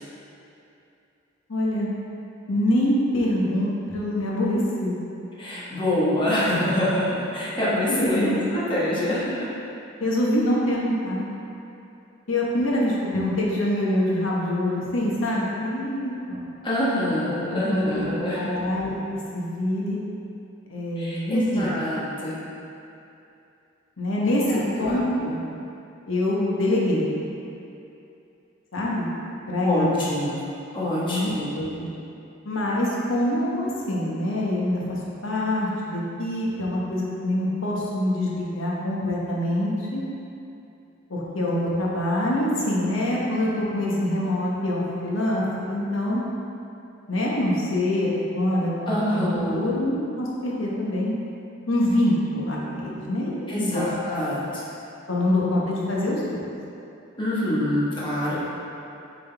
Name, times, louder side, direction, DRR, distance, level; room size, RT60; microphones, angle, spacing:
voice 1, 1.5-1.9 2.5-5.0 7.9-8.4 10.0-11.2 12.3-16.4 17.5-18.1 18.4-19.0 19.3-20.0 20.7-21.7 24.0-24.4 24.8-25.4 26.1-27.1 28.7-29.1 29.5-30.1 30.9-31.9 32.4-40.0 41.1-46.2 47.1-48.1 48.3-51.1 51.7-53.9 55.1-56.4, left 1 dB, 75° left, -4 dB, 1.1 m, -25 dB
voice 2, 5.4-9.5 16.6-18.5 21.0-22.4 24.5-25.0 29.6-30.4 30.7-31.5 48.9-49.8 53.5-54.7 57.2-58.4, left 1 dB, 25° left, -8 dB, 1.2 m, -25 dB
7.1 x 3.9 x 3.4 m, 2.8 s
head